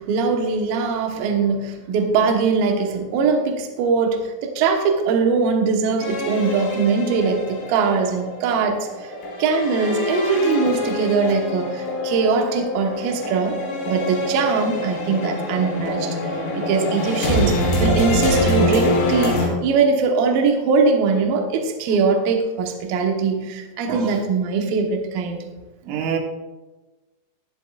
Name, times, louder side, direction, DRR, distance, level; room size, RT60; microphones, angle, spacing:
voice 1, 0.0-9.1 9.4-25.4, right 4 dB, 70° right, 2 dB, 2.4 m, -21 dB
sound 1, 6.0-19.5, left 1 dB, 85° left, 5.3 m, -25 dB
voice 2, 25.9-26.2, right 7 dB, 85° right, 2 dB, 3.8 m, -25 dB
22.5 x 7.8 x 2.4 m, 1.2 s
omnidirectional pair, 5.4 m